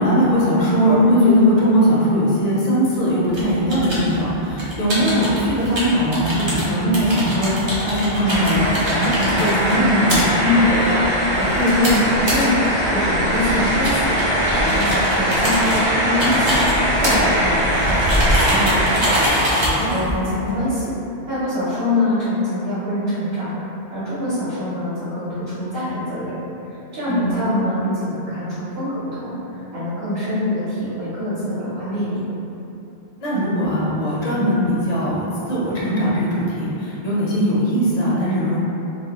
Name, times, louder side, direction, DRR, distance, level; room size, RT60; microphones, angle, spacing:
voice 1, 0.0-10.2 19.8-20.0 27.1-27.4 33.2-38.6, equal, 50° left, -8 dB, 0.5 m, -20 dB
sound 1, 3.3-20.8, equal, 40° right, 0.4 m, -26 dB
sound 2, 8.2-19.3, equal, 85° right, 1.0 m, -20 dB
voice 2, 10.4-11.0 11.4-14.1 14.4-16.6 17.0-19.1 19.6-20.9 21.3-23.5 23.9-26.3 26.9-29.4 29.7-32.2 34.3-34.5, left 1 dB, 60° right, -13 dB, 1.0 m, -23 dB
2.4 x 2.2 x 2.8 m, 2.9 s
omnidirectional pair, 1.1 m